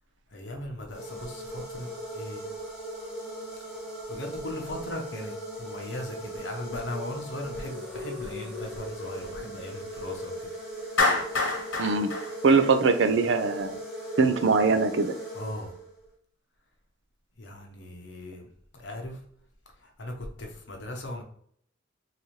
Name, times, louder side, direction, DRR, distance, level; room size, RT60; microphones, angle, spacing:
voice 1, 0.3-2.5 4.1-10.5 15.3-15.7 17.4-18.5 18.7-19.2 19.8-20.1 20.4-21.2, left 1 dB, 65° left, 2 dB, 0.9 m, -38 dB
sound 1, 0.9-16.1, right 1 dB, 5° right, 1.3 m, -39 dB
Clapping, 11.0-13.3, left 3 dB, 90° left, 1.4 m, -27 dB
voice 2, 11.8-12.1 12.4-13.8 14.2-15.1, right 4 dB, 70° right, 9 dB, 0.5 m, -22 dB
4.0 x 2.7 x 3.0 m, 0.63 s
head